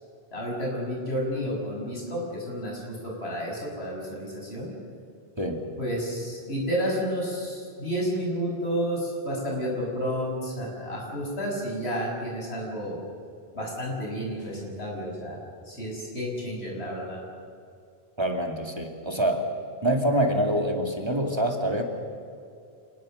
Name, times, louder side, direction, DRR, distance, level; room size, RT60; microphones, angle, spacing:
voice 1, 0.3-4.7 5.8-13.0 13.5-15.4 15.7-17.2, equal, 90° left, -2 dB, 7.2 m, -31 dB
voice 2, 18.2-19.5 19.8-21.8, right 1 dB, 25° right, 2 dB, 2.6 m, -25 dB
27.5 x 20.5 x 6.7 m, 2.4 s
omnidirectional pair, 1.0 m